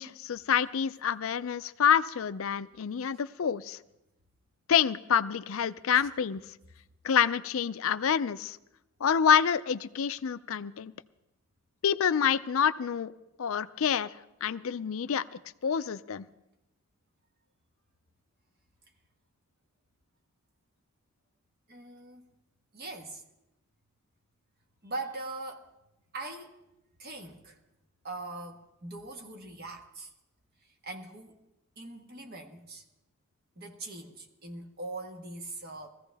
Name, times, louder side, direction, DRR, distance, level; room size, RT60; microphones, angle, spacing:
voice 1, 0.0-3.8 4.7-6.4 7.0-8.6 9.0-10.9 11.8-13.1 13.4-14.1 14.4-16.3, left 8 dB, 70° left, 15 dB, 0.4 m, -27 dB
voice 2, 21.7-22.3 22.7-23.2 24.8-25.7 26.1-26.5 27.0-27.6 28.0-30.1 30.6-31.4 31.8-32.8 33.6-35.9, right 2 dB, 45° right, 3 dB, 1.5 m, -41 dB
21.0 x 15.0 x 3.4 m, 0.90 s
head